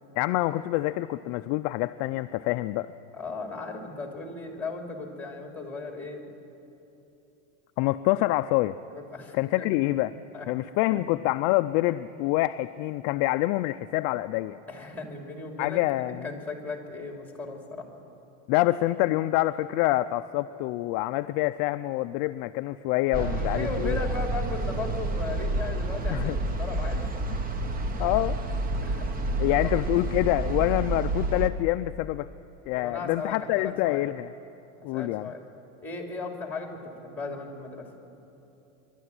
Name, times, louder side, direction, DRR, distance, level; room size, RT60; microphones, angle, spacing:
voice 1, 0.2-2.9 7.8-8.8 9.3-10.1 10.5-14.6 15.6-16.3 18.5-24.0 26.1-26.4 28.0-28.4 29.4-32.3 32.7-34.3 34.8-35.3, left 17 dB, 45° left, 11 dB, 0.4 m, -26 dB
voice 2, 3.1-6.3 8.9-9.7 10.3-10.5 10.9-11.2 14.7-15.8 16.2-17.9 23.1-27.1 28.8-29.3 29.6-29.7 32.8-34.1 34.9-35.4 35.8-37.9, left 3 dB, 5° left, 2 dB, 2.8 m, -36 dB
sound 1, 23.1-31.5, right 2 dB, 20° right, 0.9 m, -29 dB
23.5 x 12.0 x 9.6 m, 2.9 s
supercardioid pair, 140°, 38 cm